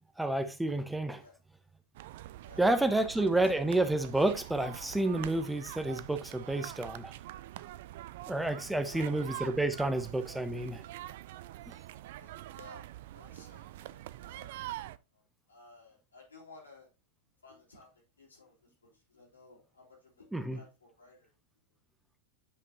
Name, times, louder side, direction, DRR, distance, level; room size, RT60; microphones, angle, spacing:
voice 1, 0.2-1.2 2.6-7.1 8.3-10.8 20.3-20.6, right 2 dB, 5° right, 0.6 m, -30 dB
sound 1, 1.9-15.0, right 14 dB, 55° right, 0.3 m, -45 dB
voice 2, 2.4-3.4 8.8-9.2 12.2-12.9 13.1-14.7 15.1-15.2 15.5-16.9 17.4-17.9 18.2-21.3, left 2 dB, 75° left, 3.4 m, -56 dB
8.7 x 5.3 x 2.8 m
figure-of-eight pair, 90°, 0 cm